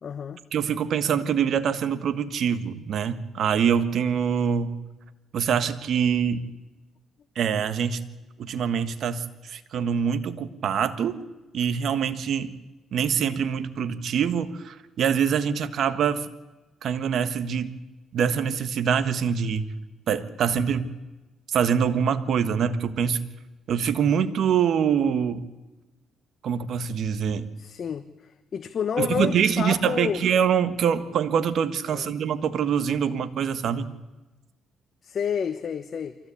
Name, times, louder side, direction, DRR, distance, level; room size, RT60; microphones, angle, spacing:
voice 1, 0.0-0.4 27.6-30.2 31.9-32.1 35.0-36.2, left 7 dB, 55° left, 9 dB, 1.2 m, -30 dB
voice 2, 0.5-4.7 5.3-6.4 7.3-8.0 8.4-11.2 11.5-12.5 12.9-16.3 16.8-17.7 18.1-19.7 20.1-20.9 21.5-23.2 23.7-25.4 26.4-27.5 29.0-33.9, right 7 dB, 65° right, 11 dB, 1.4 m, -24 dB
24.0 x 16.0 x 8.5 m, 1.1 s
cardioid pair, 90°, 0 cm